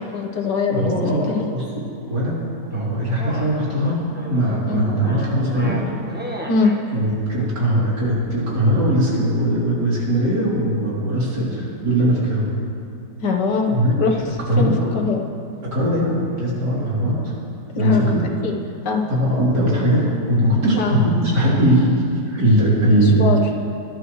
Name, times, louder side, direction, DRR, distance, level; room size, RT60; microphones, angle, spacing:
voice 1, 0.0-1.5 4.7-4.8 6.5-6.7 13.2-14.2 14.6-15.2 17.7-18.5 18.9-19.0 20.7-21.0 22.9-23.4, left 4 dB, 75° left, 2 dB, 1.8 m, -22 dB
voice 2, 0.7-1.3 1.5-2.3 2.7-4.0 4.3-5.9 6.9-12.4 13.7-13.9 14.5-14.9 15.7-17.3 17.7-18.2 19.1-21.9 22.3-23.2, right 1 dB, 70° right, -7 dB, 3.9 m, -20 dB
sound 1, 2.7-6.8, equal, 5° right, 1.1 m, -34 dB
21.0 x 11.5 x 3.2 m, 2.5 s
omnidirectional pair, 1.9 m